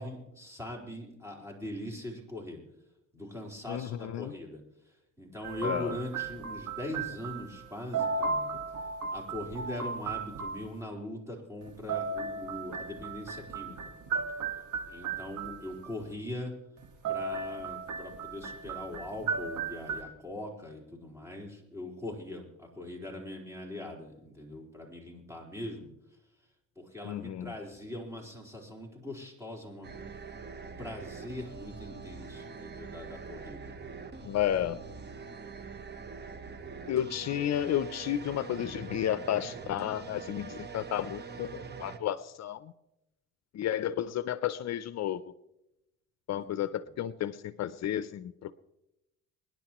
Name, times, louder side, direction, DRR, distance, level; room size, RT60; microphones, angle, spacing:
voice 1, 0.0-2.6 3.1-8.5 9.1-13.8 14.9-16.5 17.1-25.9 26.8-30.1 30.6-33.7 35.3-35.4 46.3-46.7, left 1 dB, 10° right, -1 dB, 4.1 m, -41 dB
voice 2, 3.7-4.3 5.6-6.0 27.0-27.5 34.2-34.8 36.9-42.7 43.5-45.2 46.3-48.6, left 11 dB, 60° left, 15 dB, 0.6 m, -32 dB
sound 1, 5.4-7.7 7.9-10.6 11.7-15.9 16.8-20.0, right 4 dB, 75° right, 1.8 m, -35 dB
sound 2, 29.8-42.0, right 5 dB, 35° right, 1.1 m, -44 dB
25.5 x 10.5 x 3.0 m, 0.90 s
cardioid pair, 90°, 30 cm